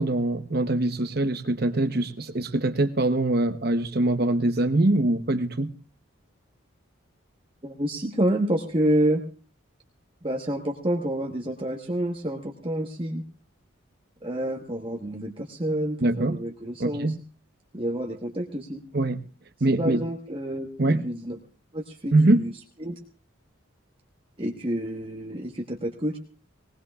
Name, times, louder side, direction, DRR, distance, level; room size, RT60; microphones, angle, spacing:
voice 1, 0.0-5.7 16.0-16.4 16.8-17.2 18.9-19.2 19.6-20.0 20.8-21.0 22.1-22.4, right 2 dB, 50° right, 8 dB, 1.0 m, -23 dB
voice 2, 7.6-9.2 10.2-13.2 14.2-17.1 17.7-18.8 19.8-21.4 21.7-22.5 22.8-22.9 24.4-26.2, right 1 dB, 25° right, 0 dB, 1.2 m, -28 dB
21.0 x 19.5 x 2.4 m, 0.37 s
head